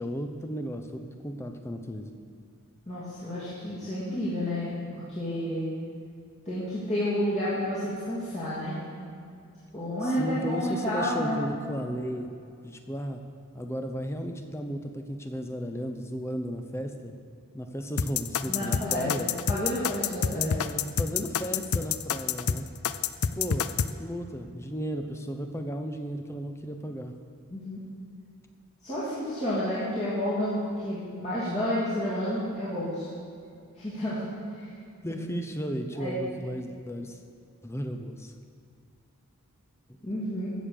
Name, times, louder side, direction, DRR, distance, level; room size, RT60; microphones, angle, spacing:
voice 1, 0.0-2.1 10.0-12.3 12.6-13.2 13.5-17.2 17.5-19.3 20.2-22.7 23.4-23.7 24.0-27.1 35.0-37.2 37.6-38.3, equal, 10° left, 6 dB, 0.8 m, -34 dB
voice 2, 2.9-5.7 6.4-8.8 9.7-11.4 18.5-19.2 19.5-20.5 27.5-27.8 28.8-33.1 33.8-34.6 35.1-35.2 35.9-36.2 40.0-40.5, equal, 30° left, -11 dB, 2.9 m, -30 dB
sound 1, 18.0-23.9, left 7 dB, 75° left, 0.5 m, -27 dB
15.0 x 7.1 x 6.7 m, 2.4 s
head